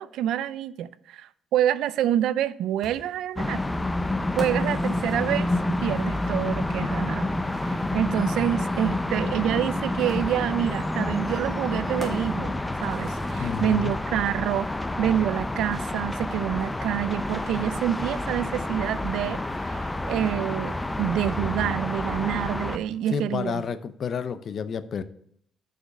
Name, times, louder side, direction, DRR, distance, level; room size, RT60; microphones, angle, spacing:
voice 1, 0.0-3.6 4.4-5.5 5.8-7.3 7.6-12.5 12.8-14.7 15.0-23.6, right 11 dB, 85° right, 0.4 m, -27 dB
sound 1, 2.8-6.5 7.9-8.0 10.1-14.0, right 1 dB, 10° right, 2.3 m, -44 dB
sound 2, 3.4-22.8, left 1 dB, 15° left, 0.6 m, -28 dB
voice 2, 13.4-13.9 23.1-25.0, left 6 dB, 55° left, 0.6 m, -30 dB
6.4 x 5.1 x 6.6 m
cardioid pair, 90°, 0 cm